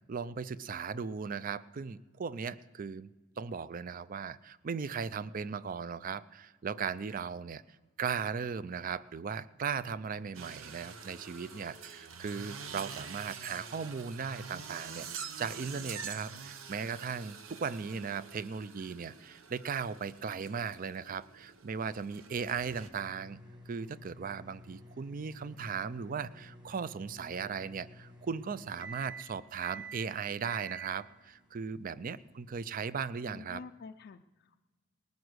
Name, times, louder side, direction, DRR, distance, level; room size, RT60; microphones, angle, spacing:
voice 1, 0.1-3.1 3.4-7.6 8.0-23.4 23.7-33.6, right 6 dB, 45° right, 17 dB, 0.4 m, -37 dB
sound 1, 10.3-22.9, right 6 dB, 85° right, 0.9 m, -46 dB
sound 2, 22.3-32.7, right 3 dB, 20° right, 1.8 m, -50 dB
voice 2, 33.3-34.6, left 4 dB, 55° left, 5 dB, 0.4 m, -49 dB
19.5 x 9.5 x 6.3 m, 1.3 s
head